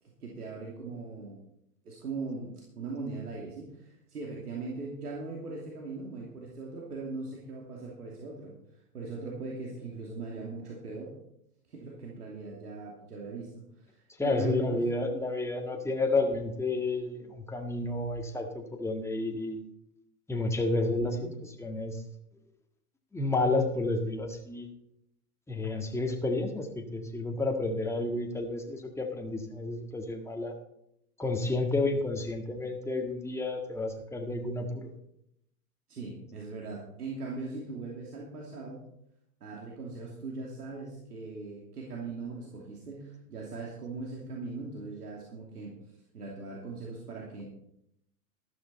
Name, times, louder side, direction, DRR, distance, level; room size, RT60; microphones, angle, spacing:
voice 1, 0.0-1.4 1.8-11.1 11.7-14.8 21.0-21.3 35.9-38.8 39.4-47.5, right 3 dB, 80° right, -2 dB, 2.9 m, -40 dB
voice 2, 14.2-19.6 20.3-22.0 23.1-24.7 25.5-30.5 31.2-34.9, left 2 dB, 5° left, 3 dB, 1.7 m, -31 dB
12.5 x 12.5 x 4.2 m, 0.78 s
hypercardioid pair, 100°, 45 cm